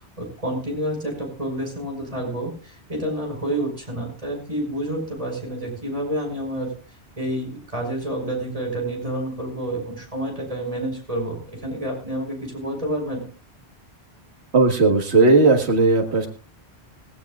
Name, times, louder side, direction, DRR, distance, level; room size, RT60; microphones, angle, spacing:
voice 1, 0.2-6.7 7.2-13.2, right 1 dB, 35° right, 1 dB, 5.4 m, -29 dB
voice 2, 14.5-16.3, right 3 dB, 75° right, 3 dB, 1.8 m, -16 dB
19.0 x 17.0 x 2.4 m, 0.36 s
omnidirectional pair, 1.1 m